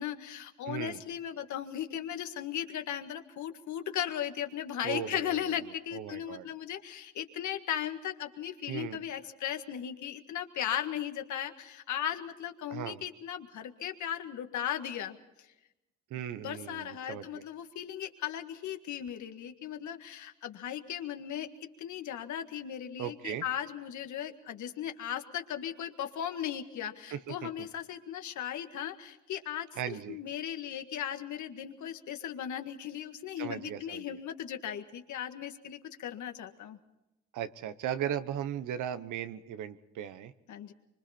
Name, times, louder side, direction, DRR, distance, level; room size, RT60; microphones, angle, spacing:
voice 1, 0.0-15.2 16.4-29.7 30.1-36.8 40.5-40.7, left 10 dB, 75° left, 6 dB, 1.8 m, -37 dB
voice 2, 0.7-1.0 4.8-5.6 5.9-6.5 8.7-9.0 12.7-13.0 16.1-17.4 23.0-23.4 27.1-27.7 29.8-30.2 33.4-34.2 37.3-40.3, right 10 dB, 80° right, 12 dB, 1.2 m, -37 dB
25.5 x 24.5 x 4.4 m, 0.92 s
cardioid pair, 90°, 30 cm